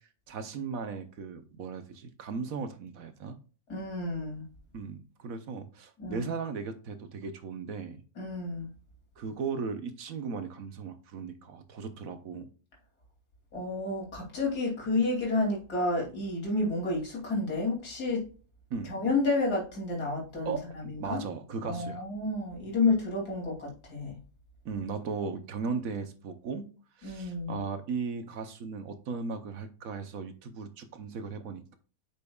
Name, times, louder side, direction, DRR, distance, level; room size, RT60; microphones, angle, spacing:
voice 1, 0.3-3.4 4.7-8.0 9.2-12.5 18.7-18.9 20.4-22.0 24.6-26.7 27.0-31.8, right 5 dB, 65° right, 9 dB, 1.3 m, -37 dB
voice 2, 3.7-4.4 6.0-6.3 8.2-8.7 13.5-18.2 18.8-21.2 21.6-24.2 27.0-27.6, left 3 dB, 90° left, -2 dB, 3.3 m, -30 dB
8.5 x 6.1 x 2.3 m, 0.37 s
omnidirectional pair, 1.6 m